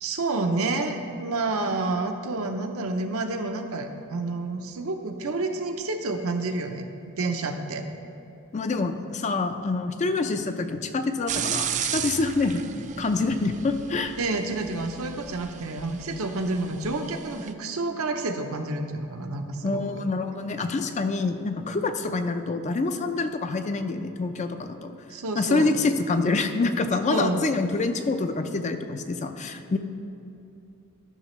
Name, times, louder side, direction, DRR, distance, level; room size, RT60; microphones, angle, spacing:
voice 1, 0.0-7.9 14.2-19.8 25.1-25.7 27.1-27.4, right 2 dB, 75° right, 5 dB, 0.7 m, -29 dB
voice 2, 8.5-12.6 13.0-14.2 19.6-24.9 25.3-29.8, left 3 dB, 35° left, 8 dB, 0.4 m, -26 dB
sound 1, 11.3-17.5, right 8 dB, 35° right, 0.3 m, -34 dB
13.0 x 5.8 x 3.1 m, 2.7 s
head